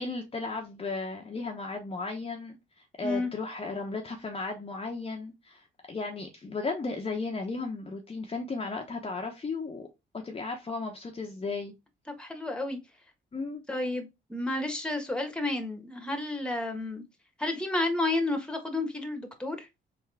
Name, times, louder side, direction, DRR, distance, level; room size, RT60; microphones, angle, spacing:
voice 1, 0.0-9.9 10.1-11.7 13.3-13.6, left 3 dB, 30° left, 0.9 m, -35 dB
voice 2, 12.2-12.8 13.7-17.0 17.4-19.7, left 2 dB, 5° left, 1.3 m, -31 dB
3.7 x 3.7 x 3.4 m
cardioid pair, 90°, 20 cm